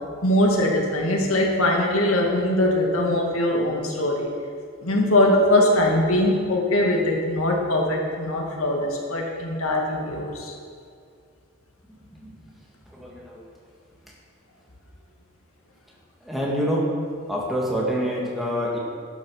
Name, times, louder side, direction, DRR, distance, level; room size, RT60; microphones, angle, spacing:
voice 1, 0.2-4.3 4.8-10.5, left 1 dB, 80° left, 0 dB, 2.1 m, -21 dB
voice 2, 12.9-13.5 16.2-16.9 17.3-18.8, equal, ahead, -4 dB, 1.9 m, -26 dB
11.5 x 8.9 x 6.4 m, 2.3 s
head